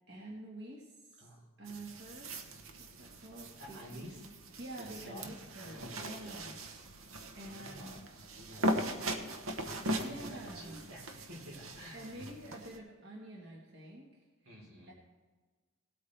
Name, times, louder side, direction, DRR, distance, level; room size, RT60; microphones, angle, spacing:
voice 1, 0.1-1.3 1.6-2.3 2.8-4.0 4.6-6.6 6.8-7.0 7.4-8.3 9.7-10.8 11.9-14.3 14.9-15.0, right 1 dB, 50° right, -2 dB, 1.6 m, -48 dB
sound 1, 1.7-12.8, right 1 dB, 70° right, 1.0 m, -40 dB
voice 2, 3.6-4.3 4.8-5.3 5.6-6.4 7.5-9.3 9.9-12.2 14.5-14.9, equal, 85° right, -2 dB, 4.0 m, -50 dB
17.5 x 8.7 x 3.3 m, 1.4 s
head